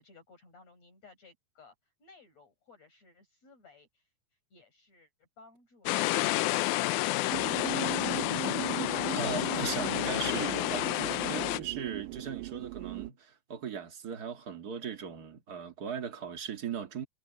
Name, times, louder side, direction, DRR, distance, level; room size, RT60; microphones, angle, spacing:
voice 1, 0.0-1.7 2.0-4.1 4.5-7.8, left 4 dB, 55° left, 8.2 m, -57 dB
sound 1, 5.9-11.6, left 18 dB, 80° left, 2.0 m, -30 dB
sound 2, 7.3-13.1, right 21 dB, 85° right, 2.1 m, -39 dB
voice 2, 9.1-17.1, right 7 dB, 40° right, 1.6 m, -38 dB
omnidirectional pair, 3.7 m